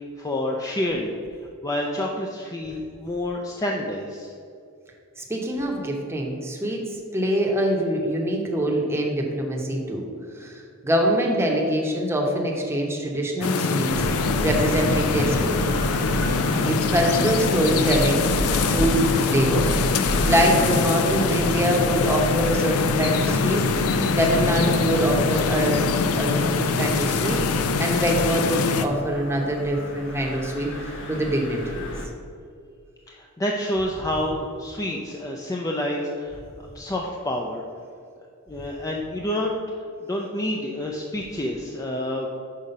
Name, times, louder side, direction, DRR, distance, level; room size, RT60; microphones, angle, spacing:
voice 1, 0.2-1.2 1.6-4.3 33.1-37.6 38.5-42.3, left 1 dB, 15° left, -1 dB, 0.4 m, -28 dB
voice 2, 5.3-6.8 7.1-10.1 10.4-13.9 14.2-15.6 16.6-19.7 20.3-23.6 24.2-25.8 26.1-30.7 31.1-31.8, equal, 10° right, -1 dB, 0.9 m, -24 dB
sound 1, 13.4-28.9, left 4 dB, 85° left, 0.5 m, -24 dB
sound 2, 13.9-32.1, equal, 60° left, 1.0 m, -31 dB
5.7 x 4.8 x 5.3 m, 2.3 s
head